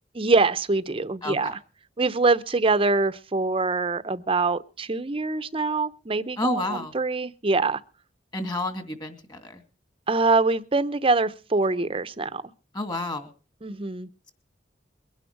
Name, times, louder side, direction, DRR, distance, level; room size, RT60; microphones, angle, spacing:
voice 1, 0.1-1.6 2.0-7.8 10.1-12.4 13.6-14.1, right 3 dB, 30° right, 13 dB, 0.7 m, -24 dB
voice 2, 1.2-1.5 6.4-6.9 8.3-9.6 12.7-13.3, left 1 dB, 25° left, 7 dB, 2.4 m, -30 dB
22.5 x 10.0 x 4.7 m, 0.35 s
head